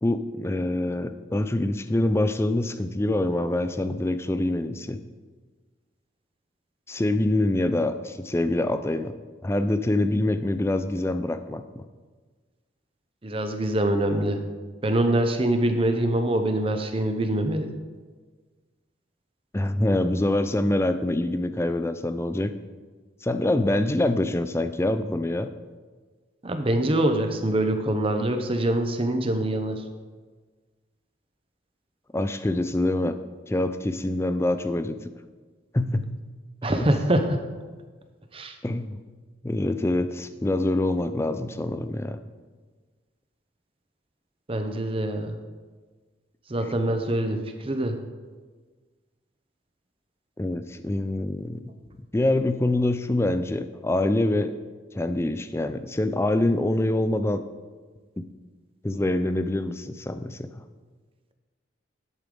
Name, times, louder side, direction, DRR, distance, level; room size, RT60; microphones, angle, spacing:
voice 1, 0.0-5.0 6.9-9.2 9.4-11.8 19.5-22.5 23.2-25.5 32.1-33.2 33.5-35.0 35.7-36.1 36.8-36.9 38.6-39.0 39.4-42.2 50.4-51.7 52.1-54.5 54.9-57.4 58.2-58.3 58.8-60.6, left 1 dB, 15° left, 10 dB, 0.4 m, -25 dB
voice 2, 13.2-14.4 14.8-17.7 26.4-29.8 36.6-37.4 38.3-38.6 44.5-45.4 46.5-48.0, right 1 dB, 30° right, 7 dB, 0.7 m, -24 dB
10.5 x 8.2 x 3.8 m, 1.4 s
head